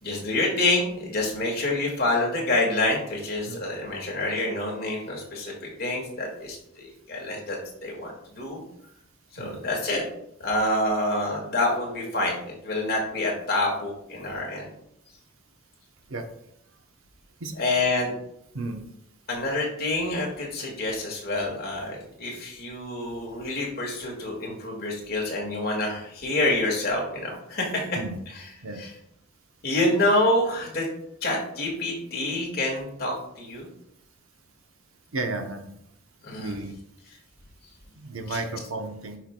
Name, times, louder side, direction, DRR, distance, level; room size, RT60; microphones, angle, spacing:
voice 1, 0.0-8.6 9.3-10.0 10.4-14.7 17.6-18.1 19.3-27.8 28.4-28.5 28.8-28.9 29.6-30.9 31.2-33.7 36.2-36.6 38.3-38.4, left 2 dB, 50° left, -2 dB, 1.8 m, -27 dB
voice 2, 35.1-35.7 36.4-36.7 38.0-39.2, right 2 dB, 90° right, 5 dB, 0.8 m, -33 dB
10.5 x 4.6 x 2.2 m, 0.76 s
head